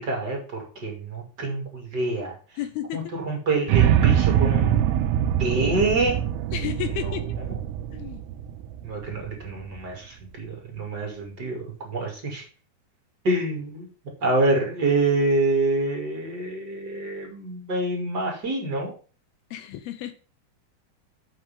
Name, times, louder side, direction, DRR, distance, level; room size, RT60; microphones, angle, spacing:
voice 1, 0.0-2.4 2.9-4.8 5.4-6.2 7.0-7.6 8.8-12.4 13.2-13.9 14.2-18.9, right 2 dB, 30° right, 0 dB, 2.4 m, -26 dB
voice 2, 2.6-3.0 6.5-7.2 7.9-8.2 19.5-20.1, left 11 dB, 80° left, 8 dB, 2.7 m, -32 dB
sound 1, 3.7-9.8, right 10 dB, 85° right, 2.6 m, -23 dB
7.5 x 4.7 x 7.1 m, 0.38 s
omnidirectional pair, 4.5 m